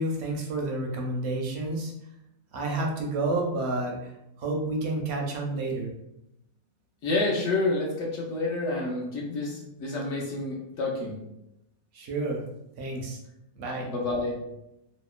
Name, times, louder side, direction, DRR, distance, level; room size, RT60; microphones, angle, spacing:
voice 1, 0.0-1.9 2.5-4.1 4.4-5.9 11.9-12.4 12.8-13.2 13.6-13.9, right 2 dB, 65° right, 0 dB, 0.7 m, -30 dB
voice 2, 7.0-11.2 13.8-14.4, left 2 dB, 65° left, -3 dB, 0.8 m, -29 dB
2.8 x 2.0 x 2.4 m, 0.85 s
omnidirectional pair, 1.5 m